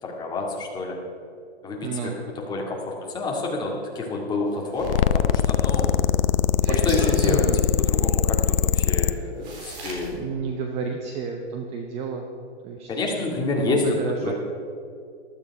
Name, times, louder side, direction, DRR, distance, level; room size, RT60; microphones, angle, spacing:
voice 1, 0.0-1.0 1.6-5.9 6.7-7.5 7.9-10.2 12.9-13.8 14.2-14.3, left 3 dB, 10° left, -2 dB, 2.2 m, -28 dB
voice 2, 1.8-2.2 7.2-7.6 9.7-12.3 12.6-12.9 13.5-14.3, right 5 dB, 20° right, 3 dB, 0.8 m, -31 dB
sound 1, 4.5-5.9 6.6-7.3 8.8-8.9 9.4-10.1, right 2 dB, 40° right, 4.1 m, -34 dB
sound 2, 4.8-9.1, left 10 dB, 60° left, 0.7 m, -21 dB
15.0 x 12.5 x 4.8 m, 2.5 s
hypercardioid pair, 150°, 33 cm